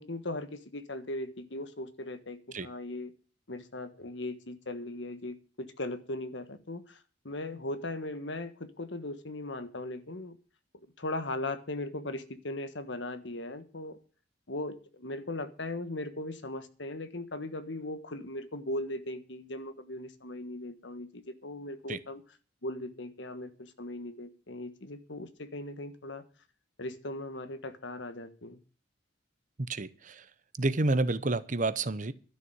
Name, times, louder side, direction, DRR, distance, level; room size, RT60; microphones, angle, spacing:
voice 1, 0.0-3.1 3.5-10.4 11.0-14.0 14.5-22.2 22.6-26.2 26.8-28.6, left 2 dB, 70° left, 11 dB, 1.5 m, -38 dB
voice 2, 29.6-30.3 30.6-32.1, right 2 dB, 40° right, 15 dB, 0.8 m, -29 dB
12.5 x 6.8 x 9.5 m, 0.38 s
head